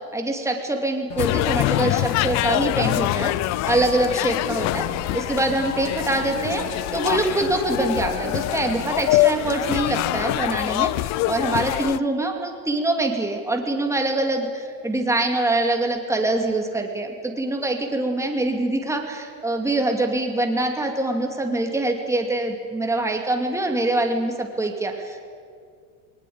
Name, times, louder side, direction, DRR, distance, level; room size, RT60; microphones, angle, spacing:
voice 1, 0.1-3.3 3.7-4.9 5.1-6.7 6.9-25.2, right 2 dB, 5° right, 3 dB, 2.6 m, -24 dB
sound 1, 1.1-9.1, left 5 dB, 70° left, 4.1 m, -37 dB
sound 2, 1.2-12.0, left 19 dB, 45° left, 0.5 m, -24 dB
20.5 x 19.0 x 8.8 m, 2.2 s
supercardioid pair, 110°, 42 cm